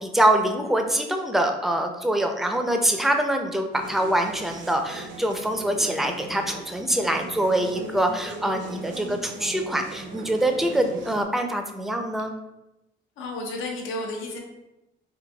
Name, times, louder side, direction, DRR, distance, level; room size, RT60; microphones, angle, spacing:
voice 1, 0.0-12.3, right 1 dB, ahead, 4 dB, 0.4 m, -24 dB
sound 1, 3.7-11.2, right 3 dB, 75° right, 0.5 m, -39 dB
voice 2, 13.2-14.4, left 2 dB, 90° left, 1 dB, 0.6 m, -32 dB
4.0 x 2.6 x 2.2 m, 0.94 s
cardioid pair, 90°, 20 cm